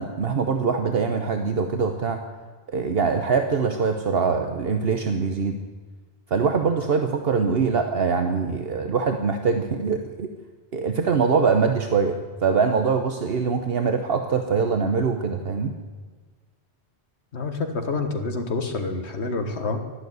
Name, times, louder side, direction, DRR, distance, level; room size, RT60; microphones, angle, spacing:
voice 1, 0.0-2.2 2.7-5.6 6.3-10.3 10.7-15.7, right 5 dB, 65° right, 6 dB, 1.1 m, -23 dB
voice 2, 17.3-19.8, left 3 dB, 80° left, 6 dB, 1.8 m, -27 dB
12.0 x 11.5 x 9.5 m, 1.4 s
omnidirectional pair, 1.1 m